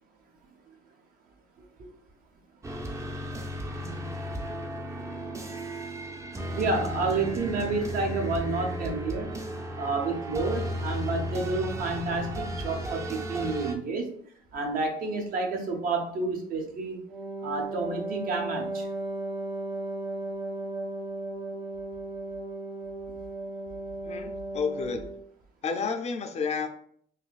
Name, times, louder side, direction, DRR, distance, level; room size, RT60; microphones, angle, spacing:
sound 1, 2.6-13.7, equal, 15° right, 0.5 m, -34 dB
voice 1, 6.6-9.3 9.8-14.1 14.5-17.0 17.4-18.9, right 3 dB, 60° right, 3 dB, 0.9 m, -30 dB
Wind instrument woodwind instrument, 17.1-25.2, right 2 dB, 85° right, 1.1 m, -35 dB
voice 2, 24.0-25.0 25.6-26.7, left 5 dB, 40° left, 6 dB, 0.5 m, -30 dB
4.1 x 2.6 x 2.3 m, 0.62 s
cardioid pair, 110°, 17 cm